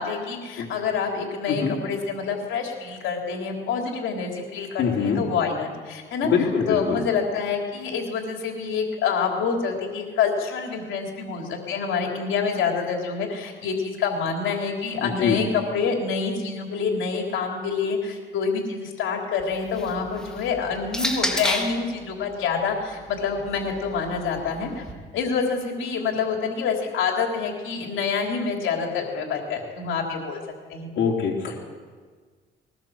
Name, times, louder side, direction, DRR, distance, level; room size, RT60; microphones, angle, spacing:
voice 1, 0.0-24.8 25.1-30.4 30.7-30.9, left 5 dB, 85° left, 1 dB, 3.7 m, -27 dB
voice 2, 4.8-5.2 6.2-7.0 15.0-15.4 31.0-31.6, left 6 dB, 65° left, -1 dB, 3.5 m, -24 dB
sound 1, 19.4-21.9 22.8-24.9, equal, 5° left, 3.4 m, -32 dB
21.5 x 19.0 x 7.7 m, 1.5 s
cardioid pair, 90°, 20 cm